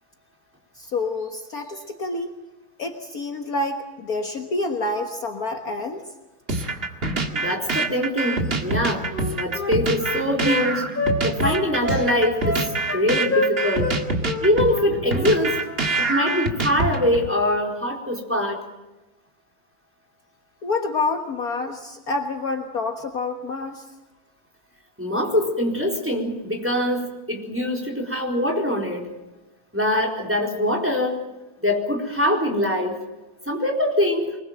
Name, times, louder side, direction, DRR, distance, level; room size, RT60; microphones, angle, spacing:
voice 1, 0.8-2.4 2.8-6.1 20.6-23.9, left 3 dB, 50° left, 5 dB, 1.8 m, -28 dB
sound 1, 6.5-17.3, right 2 dB, 30° right, 2.1 m, -25 dB
voice 2, 7.3-10.8 11.2-12.7 12.9-13.9 14.4-15.6 16.0-18.6 25.0-29.1 29.7-31.2 31.6-33.0 33.5-34.4, left 1 dB, 5° right, 0 dB, 4.2 m, -23 dB
Wind instrument woodwind instrument, 8.7-10.6 11.0-12.1 12.4-13.0 13.3-14.0 14.2-14.4 14.7-15.3 15.6-15.8, left 2 dB, 25° left, 6.2 m, -27 dB
24.5 x 21.5 x 7.7 m, 1.1 s
omnidirectional pair, 2.1 m